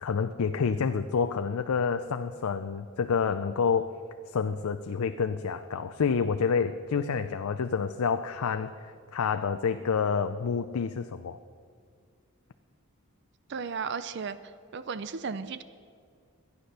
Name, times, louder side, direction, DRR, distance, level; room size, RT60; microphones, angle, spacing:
voice 1, 0.0-3.9 4.3-11.4, left 6 dB, 85° left, 9 dB, 0.5 m, -28 dB
voice 2, 13.5-15.6, right 5 dB, 50° right, 13 dB, 0.4 m, -35 dB
12.5 x 9.6 x 6.6 m, 2.1 s
head